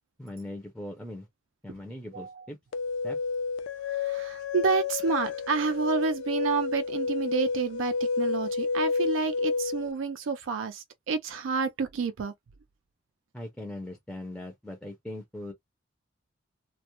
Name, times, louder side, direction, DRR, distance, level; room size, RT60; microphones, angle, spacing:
voice 1, 0.2-1.3 1.6-2.6 3.0-3.2 13.3-15.5, left 1 dB, 5° left, 0.4 m, -40 dB
voice 2, 2.1-2.5 3.9-12.3, right 5 dB, 90° right, 0.4 m, -29 dB
sound 1, 2.7-9.9, left 4 dB, 80° left, 0.4 m, -30 dB
2.2 x 2.0 x 2.8 m
head